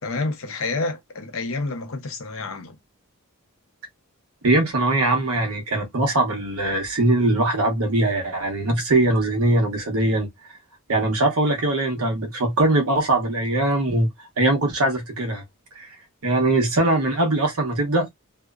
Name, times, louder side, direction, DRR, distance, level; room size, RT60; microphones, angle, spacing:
voice 1, 0.0-2.8, left 3 dB, 65° left, 0.7 m, -29 dB
voice 2, 4.4-10.3 10.9-14.1 14.4-15.4 15.8-15.9 16.2-18.1, right 2 dB, 80° right, 1.0 m, -21 dB
2.8 x 2.1 x 2.3 m
head